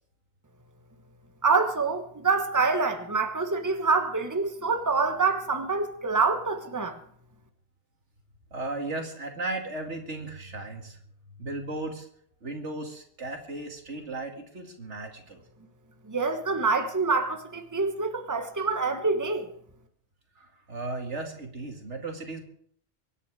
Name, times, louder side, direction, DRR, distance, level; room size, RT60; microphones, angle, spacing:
voice 1, 1.4-6.9 16.1-19.5, right 4 dB, 15° right, 1.3 m, -26 dB
voice 2, 8.5-11.0 11.4-12.1 12.4-15.4 20.4-22.4, right 2 dB, 85° right, 2.7 m, -36 dB
24.0 x 9.9 x 4.9 m
omnidirectional pair, 1.2 m